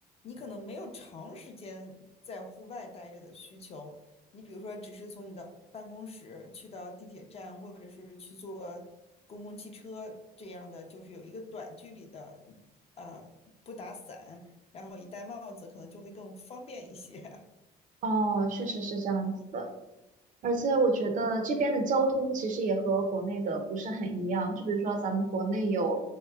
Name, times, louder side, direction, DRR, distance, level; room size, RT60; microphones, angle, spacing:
voice 1, 0.2-4.0 4.3-8.9 9.3-12.6 13.0-13.3 13.7-17.4, left 2 dB, 35° left, 3 dB, 0.5 m, -44 dB
voice 2, 18.0-19.7 20.4-26.0, right 3 dB, 50° right, 5 dB, 0.5 m, -29 dB
3.1 x 2.8 x 2.3 m, 0.99 s
cardioid pair, 110°, 17 cm